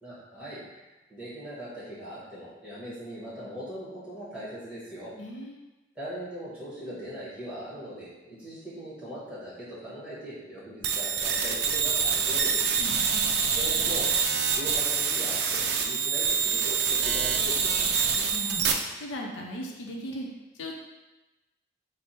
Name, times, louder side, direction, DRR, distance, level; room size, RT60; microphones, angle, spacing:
voice 1, 0.0-5.1 5.9-12.7 13.5-17.8, equal, 5° right, -10 dB, 1.2 m, -40 dB
voice 2, 5.2-5.6 12.8-13.3 18.0-18.7 19.0-20.3 20.5-20.7, equal, 85° left, 0 dB, 0.6 m, -38 dB
sound 1, 10.8-18.7, right 6 dB, 55° right, 0.3 m, -26 dB
3.4 x 2.0 x 4.2 m, 1.1 s
head